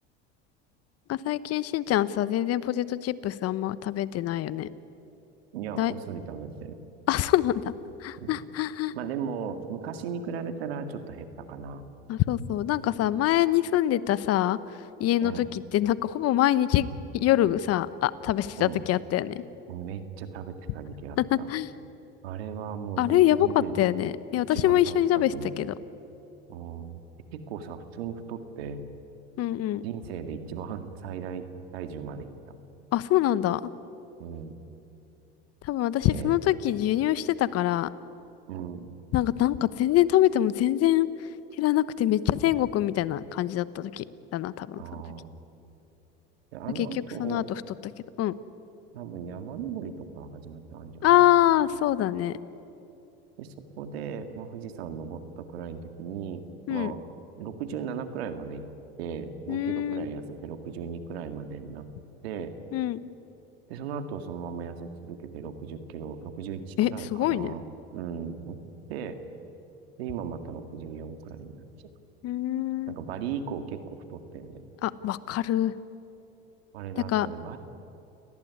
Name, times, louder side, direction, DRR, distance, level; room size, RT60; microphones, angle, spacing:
voice 1, 1.1-4.7 5.8-5.9 7.1-7.6 8.0-8.9 12.1-14.6 15.0-16.9 17.1-19.4 21.2-21.7 23.0-25.7 29.4-29.8 32.9-33.6 35.6-37.9 39.1-41.1 41.6-44.0 44.3-44.8 46.7-46.9 47.2-47.4 48.2-48.3 51.0-52.4 56.7-56.9 59.5-60.1 62.7-63.0 66.8-67.5 72.2-72.9 74.8-75.7 77.0-77.3, left 13 dB, 50° left, 16 dB, 1.1 m, -24 dB
voice 2, 5.5-6.8 8.2-8.4 8.9-11.8 15.2-15.4 18.6-18.8 19.7-21.5 22.2-23.8 24.3-25.5 26.5-27.0 27.3-28.8 29.8-31.5 31.7-32.3 34.2-34.5 36.0-36.3 38.5-38.9 44.8-45.4 46.5-47.5 48.9-51.5 53.4-57.0 57.4-58.7 59.0-61.9 62.2-62.5 63.7-67.6 67.9-68.6 68.9-69.2 70.0-71.6 72.9-74.7 76.7-77.6, right 7 dB, 90° right, 8 dB, 2.1 m, -37 dB
29.0 x 19.0 x 9.6 m, 2.9 s
supercardioid pair, 95°, 30 cm